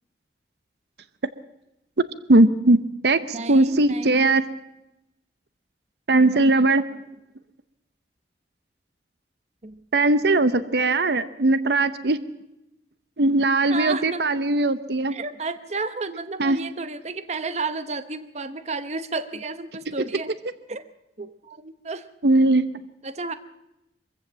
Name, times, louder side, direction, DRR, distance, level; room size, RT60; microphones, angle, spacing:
voice 1, 2.0-4.4 6.1-6.8 9.9-12.2 13.2-15.2 16.4-16.6 22.2-22.7, right 2 dB, 65° right, 13 dB, 0.8 m, -19 dB
voice 2, 3.3-4.4 6.3-6.7 9.6-9.8 13.7-14.2 15.1-20.3 20.7-20.9 21.2-22.1 23.0-23.3, right 3 dB, 40° right, 12 dB, 0.9 m, -32 dB
23.5 x 15.0 x 7.4 m, 0.91 s
head